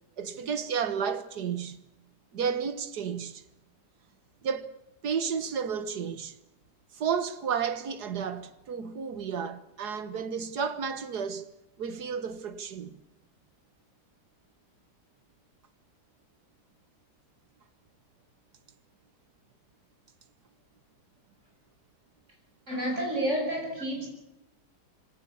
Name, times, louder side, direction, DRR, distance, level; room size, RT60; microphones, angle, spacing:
voice 1, 0.2-1.8 2.3-3.4 4.4-4.7 5.0-6.3 6.9-11.5 11.8-12.9, right 6 dB, 65° right, 1.8 m, -32 dB
voice 2, 22.7-24.1, right 1 dB, 40° right, 7.4 m, -30 dB
25.5 x 18.0 x 7.0 m
omnidirectional pair, 1.9 m